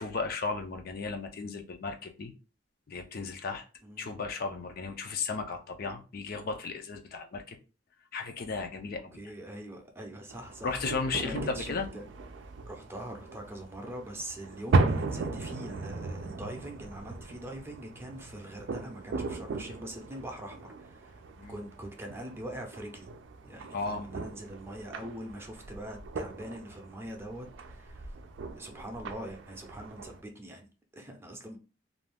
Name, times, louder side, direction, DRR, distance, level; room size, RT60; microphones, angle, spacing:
voice 1, 0.0-2.3 2.9-3.6 4.0-7.6 8.1-9.1 10.6-11.9 21.4-21.6 23.7-24.0, left 4 dB, 55° left, 0.5 m, -35 dB
voice 2, 9.1-10.8 11.2-12.0 12.7-21.2 21.5-23.1 23.4-28.1 28.6-30.7 30.9-31.6, right 1 dB, 15° right, 0.5 m, -43 dB
sound 1, 10.3-30.2, right 3 dB, 80° right, 0.4 m, -37 dB
2.6 x 2.3 x 3.4 m
head